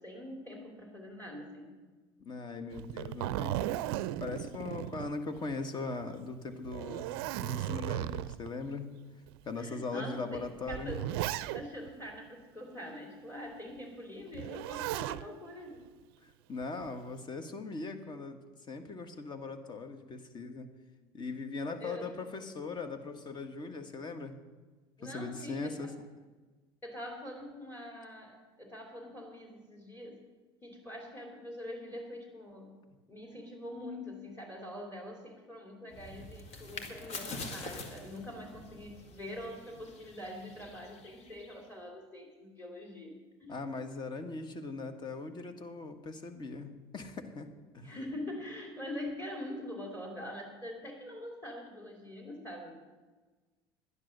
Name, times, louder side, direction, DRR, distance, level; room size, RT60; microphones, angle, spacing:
voice 1, 0.0-1.7 9.6-11.2 11.5-15.8 21.8-22.1 25.0-25.9 26.8-30.2 30.6-32.7 33.1-43.1 43.4-43.6 47.8-52.9, left 1 dB, 15° left, 2 dB, 3.2 m, -44 dB
voice 2, 2.2-3.8 4.2-7.1 7.4-8.9 9.4-11.0 16.2-18.4 18.7-20.7 21.1-24.4 25.0-25.9 43.5-47.5 47.7-47.9, left 3 dB, 35° left, 8 dB, 1.6 m, -40 dB
Zipper (clothing), 2.7-5.6 6.0-6.1 6.7-8.5 9.3-9.4 10.3-11.9 14.3-15.2 16.6-17.1, right 14 dB, 70° right, 0.5 m, -36 dB
sound 1, 35.9-41.7, left 3 dB, 55° left, 2.0 m, -45 dB
11.5 x 10.5 x 6.7 m, 1.3 s
hypercardioid pair, 80°, 13 cm